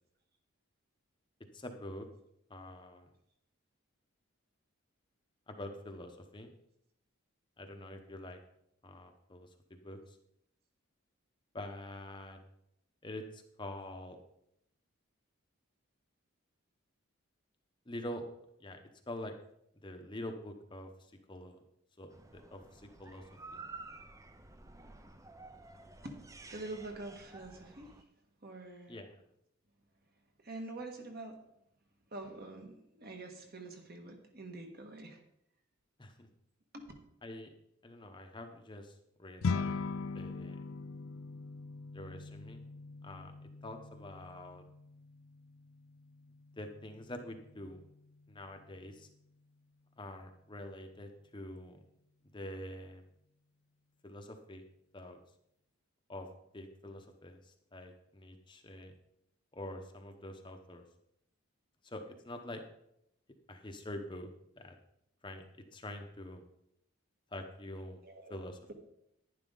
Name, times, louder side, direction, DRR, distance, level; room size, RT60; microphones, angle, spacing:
voice 1, 1.5-2.1 2.5-3.1 5.5-6.5 7.6-8.4 8.8-10.2 11.5-12.4 13.0-14.2 17.9-18.2 18.6-18.8 19.1-19.3 19.8-21.6 22.0-23.2 23.5-23.6 28.9-29.1 36.0-36.3 37.2-37.5 37.8-39.8 40.1-40.6 41.9-42.6 43.0-43.3 43.6-44.6 46.6-47.8 48.3-49.1 50.0-51.8 52.3-53.1 54.0-54.6 54.9-55.2 56.1-56.3 56.5-58.9 59.5-60.8 61.8-62.6 63.5-64.3 64.6-64.8 65.2-65.4 65.7-66.4 67.3-68.0 68.3-68.7, left 1 dB, 20° left, 5 dB, 0.9 m, -46 dB
sound 1, 22.1-28.0, right 3 dB, 15° right, 0.5 m, -52 dB
voice 2, 26.5-28.0 28.4-29.0 30.4-31.4 32.1-35.2 36.7-36.8 68.0-68.4, right 2 dB, 45° right, 3 dB, 1.7 m, -46 dB
sound 2, 39.4-48.9, left 4 dB, 75° left, 0.5 m, -41 dB
11.0 x 10.5 x 3.9 m, 0.77 s
head